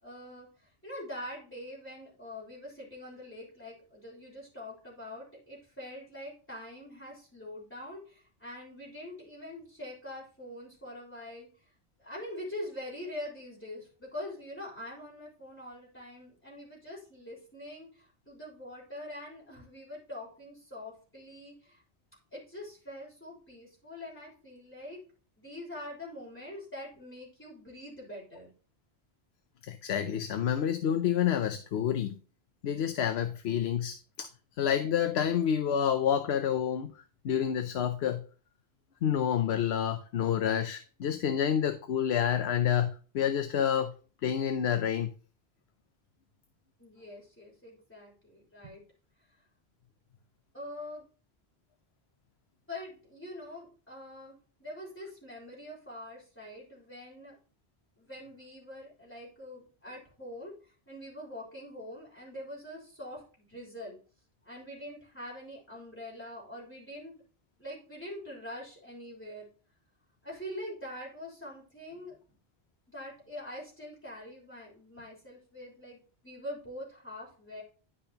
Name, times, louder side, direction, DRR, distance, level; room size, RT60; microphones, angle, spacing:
voice 1, 0.0-11.5 12.0-21.8 22.3-25.0 25.4-28.5 46.8-48.8 50.5-51.0 52.7-57.3 58.0-64.0 64.4-67.1 67.6-69.5 70.2-72.2 72.9-77.6, left 1 dB, 10° left, 3.3 m, -44 dB
voice 2, 29.7-32.1 32.6-34.3 34.6-36.9 37.2-38.2 39.0-43.9 44.2-45.1, left 9 dB, 85° left, 0.9 m, -28 dB
11.5 x 5.3 x 2.9 m
omnidirectional pair, 1.0 m